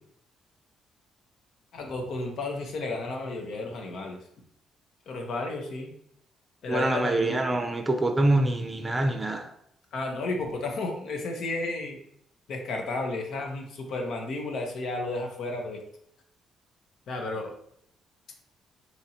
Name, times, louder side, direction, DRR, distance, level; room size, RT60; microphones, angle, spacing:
voice 1, 1.7-4.2 5.1-5.9 6.6-7.4 9.9-12.0 12.5-15.8 17.1-17.5, left 2 dB, 70° left, 2 dB, 0.7 m, -32 dB
voice 2, 6.7-9.5, right 2 dB, 20° right, 4 dB, 0.6 m, -25 dB
2.9 x 2.6 x 4.2 m, 0.71 s
cardioid pair, 90°, 0 cm